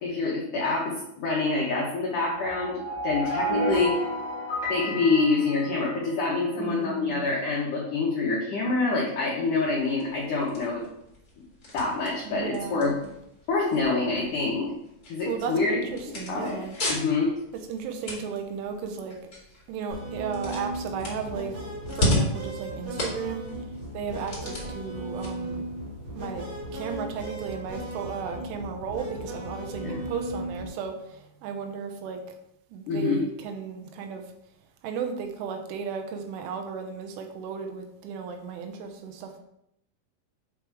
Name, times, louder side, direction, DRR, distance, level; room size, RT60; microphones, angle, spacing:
voice 1, 0.0-4.0 4.7-10.8 11.7-12.9 13.5-14.7 15.1-15.8 16.3-16.6 16.9-17.3 29.8-30.0 32.9-33.2, left 3 dB, 80° left, -4 dB, 1.8 m, -26 dB
sound 1, 2.3-6.3, right 1 dB, 20° left, 0.6 m, -31 dB
voice 2, 6.6-7.3 12.2-13.1 15.3-16.8 17.5-19.2 19.7-21.5 21.9-23.7 23.9-25.7 26.1-32.2 32.7-34.3 34.8-39.4, right 6 dB, 85° right, 4 dB, 3.3 m, -35 dB
sound 2, 9.7-26.6, left 1 dB, 40° left, 1.2 m, -36 dB
sound 3, 19.9-30.7, right 1 dB, 70° right, 1.4 m, -36 dB
8.0 x 3.4 x 4.7 m, 0.79 s
omnidirectional pair, 5.4 m